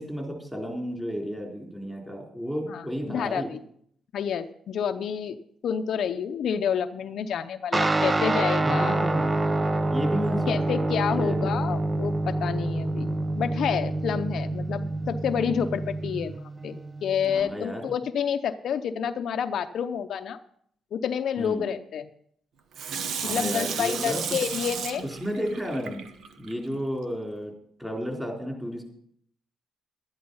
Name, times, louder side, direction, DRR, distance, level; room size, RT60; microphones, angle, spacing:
voice 1, 0.0-3.5 8.6-9.3 9.9-10.7 11.2-11.6 17.2-17.8 21.4-21.7 23.2-24.2 25.2-26.0 26.4-27.5 27.8-28.8, equal, 5° right, 0 dB, 4.0 m, -32 dB
voice 2, 2.7-3.6 4.1-5.4 5.6-9.0 10.5-20.4 20.9-22.1 23.2-25.1, left 8 dB, 65° left, 8 dB, 0.7 m, -29 dB
Guitar, 7.7-17.4, right 2 dB, 25° right, 0.6 m, -27 dB
Water tap faucet / Sink (filling or washing), 22.7-26.5 27.0-27.1, right 6 dB, 70° right, 1.2 m, -33 dB
12.0 x 10.5 x 5.5 m, 0.66 s
cardioid pair, 90°, 0 cm